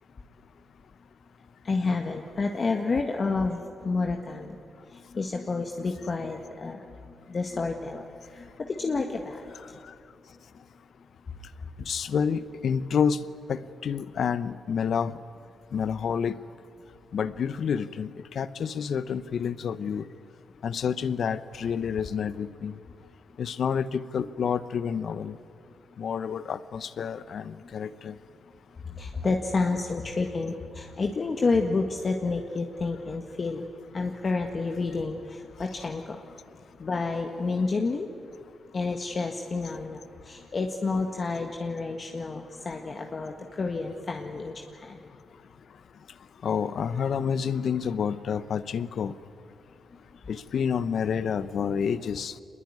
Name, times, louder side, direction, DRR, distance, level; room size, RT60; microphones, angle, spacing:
voice 1, 1.6-4.6 5.1-6.8 7.3-8.1 8.3-9.5 29.0-33.7 33.9-36.2 36.8-38.1 38.7-45.0, left 3 dB, 45° left, 3 dB, 1.8 m, -29 dB
voice 2, 11.9-13.2 13.5-15.1 15.7-16.4 17.1-20.0 20.6-22.7 23.4-25.4 26.0-28.2 46.4-49.1 50.3-52.3, left 7 dB, 65° left, 15 dB, 0.9 m, -29 dB
25.0 x 21.0 x 9.6 m, 2.5 s
cardioid pair, 80°, 0 cm